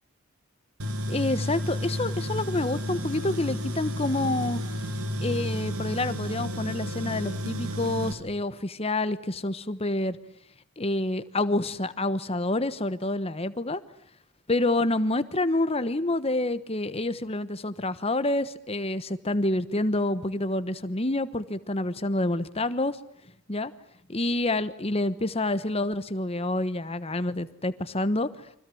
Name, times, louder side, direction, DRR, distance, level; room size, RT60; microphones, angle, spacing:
Tools, 0.8-8.1, equal, 85° right, 2.8 m, -31 dB
voice 1, 1.1-4.6 5.2-10.2 10.8-13.8 14.5-23.0 23.5-23.7 24.1-28.3, left 2 dB, 25° left, 13 dB, 1.2 m, -28 dB
30.0 x 24.5 x 7.9 m, 0.67 s
head